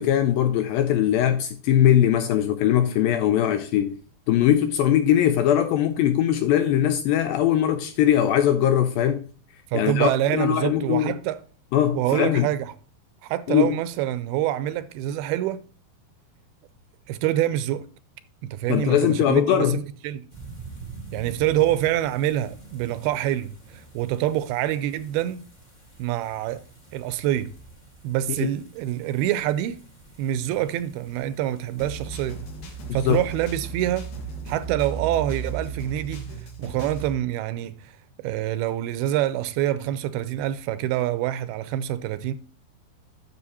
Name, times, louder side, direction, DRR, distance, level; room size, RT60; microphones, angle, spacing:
voice 1, 0.0-4.0 4.3-9.2 9.7-11.1 11.7-12.5 13.5-13.8 18.7-19.8 28.4-28.5 32.9-33.2, left 10 dB, 85° left, 2.1 m, -21 dB
voice 2, 9.7-11.4 11.9-12.7 13.2-15.6 17.1-17.9 18.4-20.2 21.1-25.4 26.0-26.6 26.9-27.5 28.0-29.8 30.2-32.4 32.9-34.1 34.5-36.2 36.6-42.3, right 12 dB, 80° right, 2.4 m, -26 dB
sound 1, 20.3-34.7, right 4 dB, 25° left, 0.9 m, -46 dB
sound 2, 31.8-37.1, right 5 dB, 60° left, 2.7 m, -35 dB
9.7 x 7.0 x 2.8 m
omnidirectional pair, 4.6 m